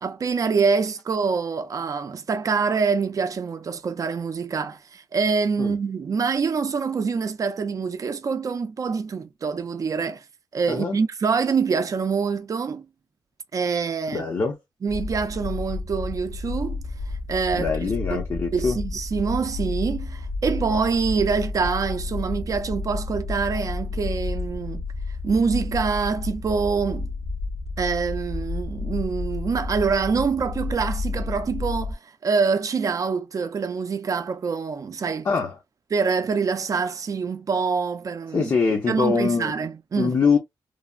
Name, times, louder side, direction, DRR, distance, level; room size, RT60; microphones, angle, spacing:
voice 1, 0.0-10.2 10.5-12.9 13.5-14.3 14.8-18.3 18.5-24.8 25.2-27.1 27.8-35.3 35.9-38.5 38.9-40.2, right 5 dB, 45° right, 0.5 m, -25 dB
voice 2, 14.1-14.6 17.5-18.8 35.2-35.5 38.3-39.5 40.0-40.4, left 5 dB, 45° left, 0.7 m, -23 dB
sound 1, 14.9-31.9, left 3 dB, 80° left, 1.0 m, -31 dB
3.2 x 2.0 x 2.4 m
wide cardioid pair, 125°, 8 cm